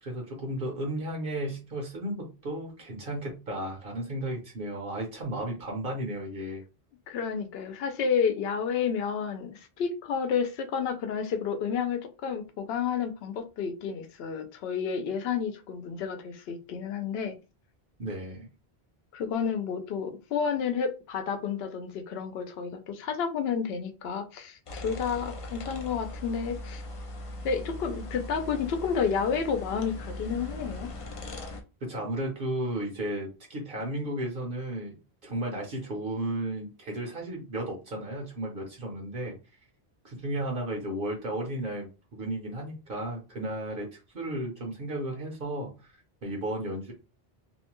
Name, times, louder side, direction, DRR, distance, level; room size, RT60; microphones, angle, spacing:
voice 1, 0.0-6.6 18.0-18.5 31.8-35.0 35.2-39.4 40.0-45.9 46.2-46.9, right 1 dB, 60° right, 0 dB, 0.9 m, -34 dB
voice 2, 7.1-17.3 19.1-26.8 27.4-30.9, left 6 dB, 75° left, 7 dB, 0.8 m, -30 dB
sound 1, 24.7-31.6, left 1 dB, 50° left, 0.4 m, -40 dB
2.7 x 2.1 x 2.9 m, 0.30 s
omnidirectional pair, 1.1 m